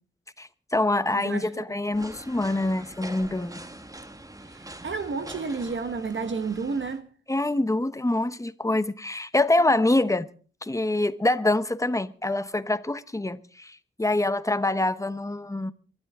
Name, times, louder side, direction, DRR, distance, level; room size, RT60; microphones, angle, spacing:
voice 1, 0.4-3.6 7.3-10.3 10.6-15.7, left 2 dB, 15° left, 1.0 m, -25 dB
voice 2, 1.1-1.6 4.5-7.1, right 4 dB, 65° right, 1.4 m, -31 dB
sound 1, 1.9-7.0, right 1 dB, 15° right, 1.5 m, -44 dB
24.0 x 12.5 x 3.6 m
wide cardioid pair, 90°, 21 cm